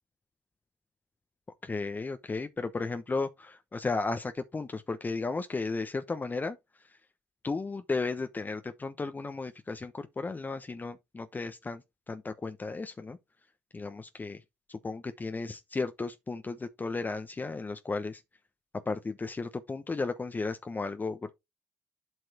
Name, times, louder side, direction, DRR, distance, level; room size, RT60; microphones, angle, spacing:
voice 1, 1.6-6.6 7.4-11.8 12.1-13.2 13.7-14.4 14.7-18.2 18.9-21.3, left 3 dB, 25° left, 1.0 m, -34 dB
8.1 x 4.7 x 4.3 m
hypercardioid pair, 55°, 7 cm